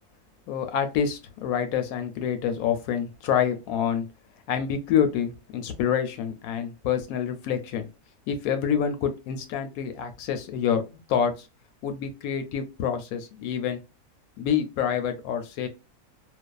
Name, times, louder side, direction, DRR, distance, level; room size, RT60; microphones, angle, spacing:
voice 1, 0.5-4.1 4.5-7.9 8.3-11.5 11.8-13.8 14.4-15.7, left 8 dB, 80° left, 1.0 m, -27 dB
2.5 x 2.2 x 2.2 m
omnidirectional pair, 1.5 m